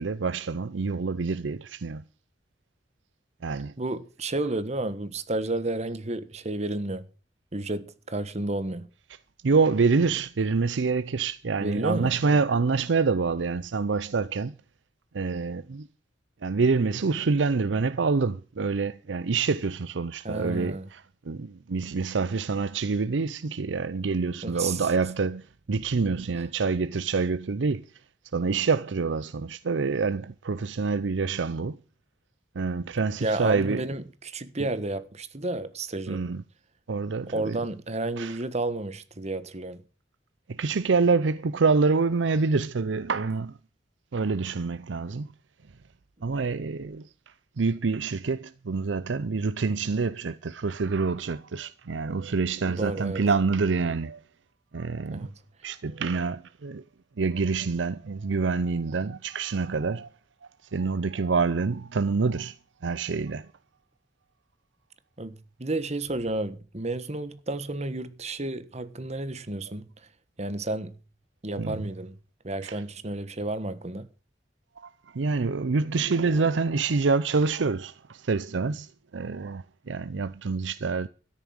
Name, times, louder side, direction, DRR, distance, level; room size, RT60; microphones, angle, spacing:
voice 1, 0.0-2.0 3.4-3.7 9.4-14.5 15.1-15.9 16.4-27.8 28.3-31.8 32.6-33.8 34.6-34.7 36.1-36.4 36.9-37.6 38.2-38.4 40.5-43.5 44.1-45.3 46.2-47.0 47.6-54.2 54.7-55.3 55.6-56.8 57.2-60.1 60.7-62.5 62.8-63.5 71.6-71.9 72.6-72.8 74.8-81.1, right 4 dB, 90° right, 0.6 m, -26 dB
voice 2, 3.8-7.0 7.5-8.9 11.6-12.1 20.2-20.9 24.4-24.9 33.2-36.2 37.3-39.8 52.6-53.2 55.1-55.3 65.2-69.9 70.4-71.0 71.4-72.2 72.4-74.1, right 2 dB, 40° right, 1.3 m, -31 dB
13.0 x 10.5 x 6.4 m
head